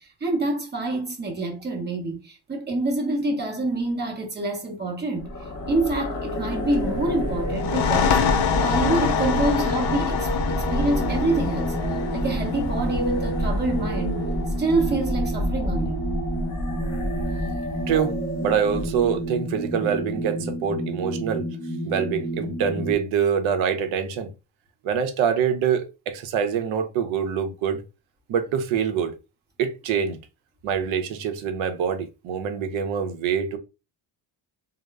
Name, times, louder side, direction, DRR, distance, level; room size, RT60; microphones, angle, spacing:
voice 1, 0.0-5.3 5.7-11.8 12.1-14.3 14.6-16.0, right 2 dB, 20° right, 0.6 m, -27 dB
sound 1, 5.1-19.3, equal, 35° left, 0.8 m, -28 dB
sound 2, 7.5-14.9, left 8 dB, 75° left, 0.6 m, -26 dB
sound 3, 11.0-22.9, right 1 dB, 20° left, 0.4 m, -31 dB
voice 2, 17.9-18.2 18.4-21.5 21.8-24.3 24.8-27.8 28.3-29.1 29.6-30.2 30.6-33.6, right 7 dB, 80° right, 0.6 m, -25 dB
2.1 x 2.0 x 3.3 m
cardioid pair, 160°, 47 cm